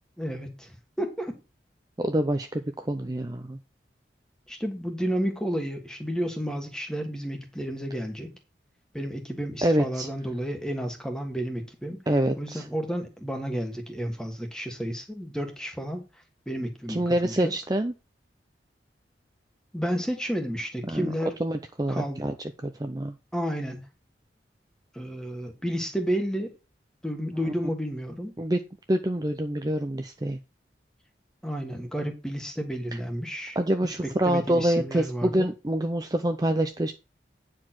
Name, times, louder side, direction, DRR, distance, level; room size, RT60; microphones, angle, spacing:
voice 1, 0.2-1.4 4.5-8.3 8.9-12.0 12.4-16.0 16.5-17.5 19.7-21.4 21.9-22.2 23.3-23.9 24.9-26.5 27.0-28.3 31.4-33.6 34.0-35.5, equal, 5° left, 4 dB, 1.5 m, -31 dB
voice 2, 2.0-3.6 9.6-10.1 12.1-12.6 16.9-17.9 20.9-21.1 21.4-22.3 22.6-23.1 27.4-27.5 28.4-28.6 28.9-30.4 33.6-36.9, right 1 dB, 20° right, 7 dB, 0.5 m, -26 dB
9.6 x 4.6 x 5.9 m, 0.29 s
head